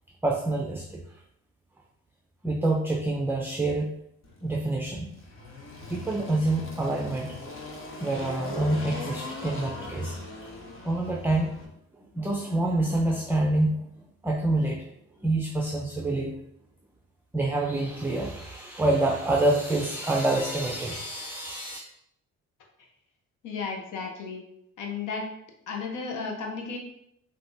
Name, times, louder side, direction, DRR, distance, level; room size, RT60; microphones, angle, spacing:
voice 1, 0.2-1.0 2.4-4.0 4.4-5.1 5.9-7.4 8.0-10.5 10.8-11.5 11.9-13.9 14.2-14.9 15.2-16.4 17.3-21.8, right 2 dB, 5° right, 0 dB, 0.5 m, -27 dB
Engine, 4.2-11.7, left 2 dB, 45° left, 1.1 m, -40 dB
voice 2, 23.4-24.4 24.8-25.3 25.7-26.8, left 4 dB, 85° left, 2 dB, 1.0 m, -33 dB
5.7 x 2.8 x 2.6 m, 0.75 s
cardioid pair, 90°, 30 cm